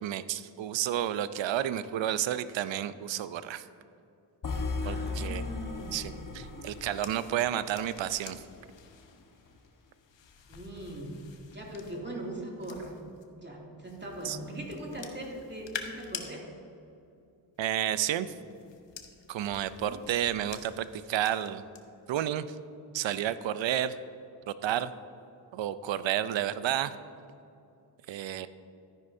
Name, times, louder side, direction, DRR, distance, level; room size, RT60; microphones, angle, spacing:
voice 1, 0.0-3.6 4.9-5.4 5.9-8.4 14.2-14.4 17.6-18.3 19.3-21.6 22.1-22.6 22.9-24.0 24.5-24.9 25.5-26.9 28.1-28.5, right 11 dB, 75° right, 14 dB, 0.6 m, -31 dB
sound 1, 4.4-8.5, left 3 dB, 45° left, 1.2 m, -37 dB
voice 2, 4.8-6.0 10.5-11.1 11.5-12.9 13.3-16.4 19.8-20.0, right 1 dB, 25° right, -2 dB, 2.5 m, -40 dB
sound 2, 5.7-13.3 13.8-16.3 17.6-21.8 22.2-22.5, left 7 dB, 70° left, 1.0 m, -48 dB
13.0 x 9.8 x 2.7 m, 2.6 s
cardioid pair, 50°, 46 cm